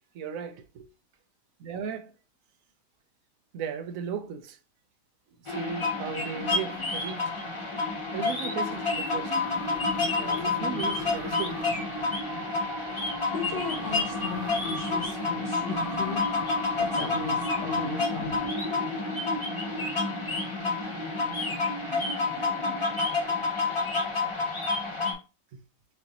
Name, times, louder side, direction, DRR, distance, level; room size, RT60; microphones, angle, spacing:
voice 1, 0.1-0.9 1.6-2.1 3.5-4.6 5.4-7.2 8.1-9.3 10.2-11.6 25.5-25.6, right 7 dB, 65° right, 0.9 m, -36 dB
sound 1, 5.5-25.1, left 3 dB, 25° left, 0.8 m, -29 dB
sound 2, 8.7-18.4, right 2 dB, 35° right, 0.6 m, -43 dB
voice 2, 13.3-16.3 16.8-18.5, left 7 dB, 65° left, 0.6 m, -37 dB
5.9 x 2.5 x 2.9 m
omnidirectional pair, 1.8 m